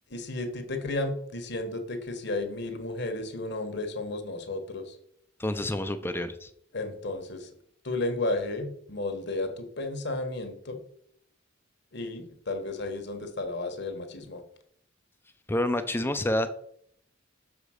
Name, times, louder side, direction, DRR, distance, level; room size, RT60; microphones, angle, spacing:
voice 1, 0.1-4.9 6.7-7.5 7.8-10.8 11.9-14.4, left 2 dB, 60° left, 6 dB, 1.4 m, -33 dB
voice 2, 5.4-6.5 15.5-16.5, left 1 dB, 10° left, 9 dB, 0.5 m, -28 dB
6.6 x 5.0 x 6.4 m, 0.68 s
head